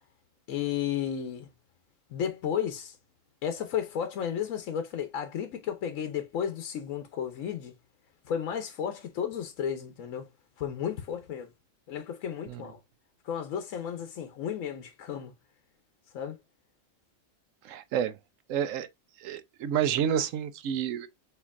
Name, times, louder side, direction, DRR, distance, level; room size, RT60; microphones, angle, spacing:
voice 1, 0.5-1.5 2.1-3.0 3.4-7.7 8.3-10.3 10.6-11.5 11.9-12.8 13.2-15.3 16.1-16.4, left 8 dB, 85° left, 1.1 m, -33 dB
voice 2, 17.6-18.2 18.5-18.9 19.2-21.1, right 9 dB, 80° right, 1.0 m, -29 dB
6.7 x 2.9 x 2.4 m
omnidirectional pair, 1.3 m